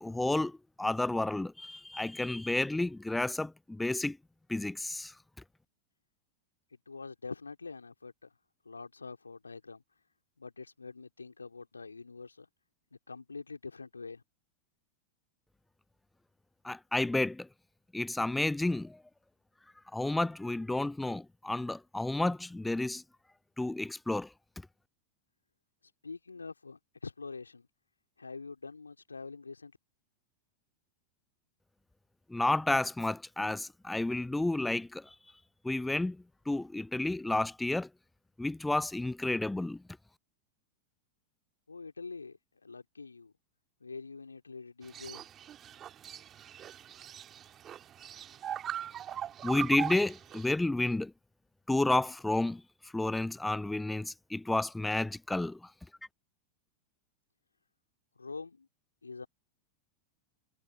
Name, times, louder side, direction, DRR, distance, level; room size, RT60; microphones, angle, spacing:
voice 1, 0.0-4.2 4.5-5.1 16.6-17.5 17.9-19.0 19.9-23.0 23.6-24.3 32.3-35.1 35.6-37.9 38.4-39.8 49.4-51.1 51.7-52.6 52.9-55.7, left 2 dB, 5° left, 0.6 m, -31 dB
voice 2, 6.7-8.3 8.6-9.8 10.4-12.5 12.9-14.2 26.0-27.7 28.2-29.7 41.7-43.3 43.8-45.2 58.2-58.7 59.0-59.3, left 4 dB, 80° left, 3.0 m, -45 dB
sound 1, 44.8-50.5, right 10 dB, 25° right, 2.5 m, -41 dB
figure-of-eight pair, 90°, 0 cm